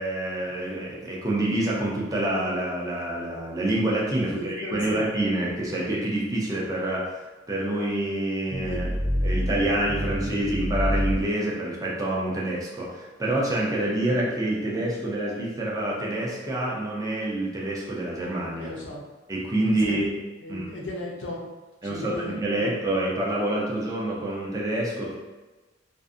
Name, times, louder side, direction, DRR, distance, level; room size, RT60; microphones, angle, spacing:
voice 1, 0.0-8.9 9.2-18.7 19.3-20.1 20.5-20.7 21.8-25.2, right 1 dB, 20° right, -5 dB, 0.5 m, -27 dB
voice 2, 4.3-5.0 8.7-8.8 18.6-19.0 19.6-20.0 20.4-21.5 21.8-22.3 22.6-22.7, left 1 dB, 85° left, -2 dB, 0.6 m, -36 dB
sound 1, 8.5-11.2, equal, 65° right, 0.7 m, -27 dB
2.6 x 2.4 x 2.4 m, 1.2 s
head